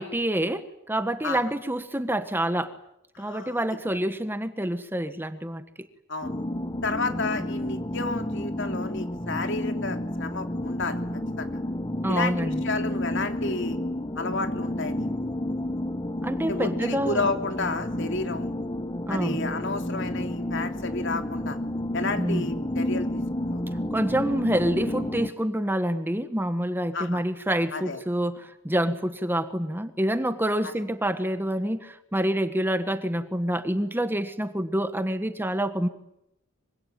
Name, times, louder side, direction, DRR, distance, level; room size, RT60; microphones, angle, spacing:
voice 1, 0.0-2.7 3.2-5.6 7.1-7.2 12.0-12.6 16.2-17.3 19.1-19.4 22.2-22.6 23.9-35.9, right 1 dB, 10° right, 10 dB, 1.4 m, -27 dB
voice 2, 3.1-3.6 6.1-6.3 6.8-11.0 11.4-11.5 12.1-13.8 14.1-15.3 16.5-18.5 19.1-21.6 21.9-23.2 23.5-23.6 26.9-27.2 27.7-28.0, left 3 dB, 60° left, 6 dB, 3.2 m, -31 dB
sound 1, 6.2-25.3, left 1 dB, 20° left, 1.2 m, -31 dB
25.5 x 24.5 x 9.2 m, 0.82 s
head